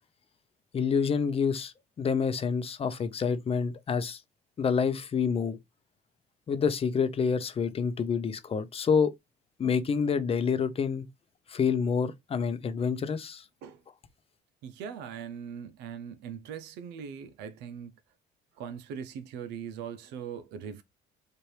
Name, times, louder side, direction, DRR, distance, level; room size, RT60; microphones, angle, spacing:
voice 1, 0.7-4.2 4.6-5.6 6.5-9.1 9.6-11.1 11.5-13.4, left 6 dB, 35° left, 0.7 m, -28 dB
voice 2, 14.6-17.9 18.6-20.8, right 7 dB, 85° right, 0.7 m, -40 dB
4.4 x 2.5 x 3.2 m
cardioid pair, 110°, 17 cm